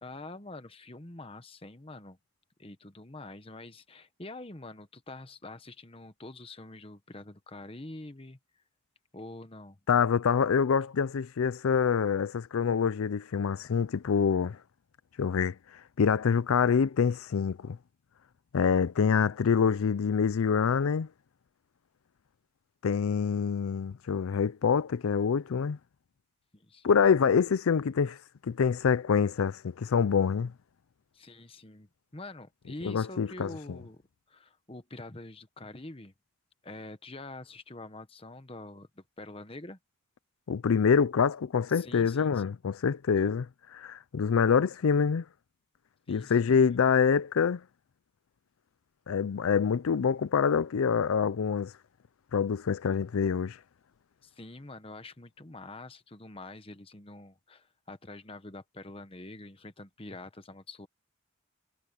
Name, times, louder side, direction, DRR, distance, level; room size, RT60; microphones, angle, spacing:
voice 1, 0.0-2.2 2.6-8.4 9.1-9.8 26.5-27.0 31.1-34.0 34.3-36.1 36.6-39.8 41.7-42.4 46.1-46.6 54.2-60.9, left 2 dB, 25° left, 1.1 m, -45 dB
voice 2, 9.9-14.6 15.2-15.5 16.0-17.8 18.5-21.1 22.8-25.8 26.8-28.2 28.4-30.5 32.8-33.5 40.5-43.5 43.7-45.2 46.1-47.6 49.1-51.7 52.3-53.6, left 6 dB, 80° left, 0.4 m, -26 dB
head